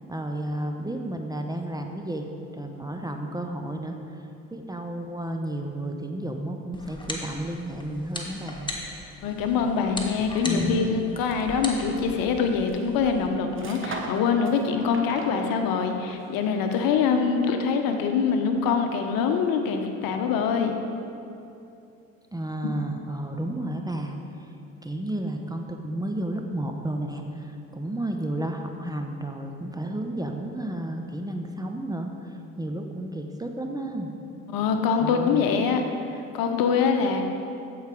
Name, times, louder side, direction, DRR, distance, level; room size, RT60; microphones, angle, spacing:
voice 1, 0.1-2.3 2.5-8.7 10.4-10.9 22.3-24.5 24.8-34.1 35.0-35.5, right 1 dB, 10° right, 3 dB, 0.8 m, -32 dB
sound 1, 6.7-13.3, left 2 dB, 10° left, 1.5 m, -39 dB
voice 2, 9.2-20.7 34.5-35.8 36.1-37.2, left 6 dB, 55° left, 5 dB, 1.0 m, -24 dB
sound 2, 10.3-17.1, right 2 dB, 30° right, 1.3 m, -42 dB
14.5 x 4.9 x 5.0 m, 2.7 s
figure-of-eight pair, 55°, 41 cm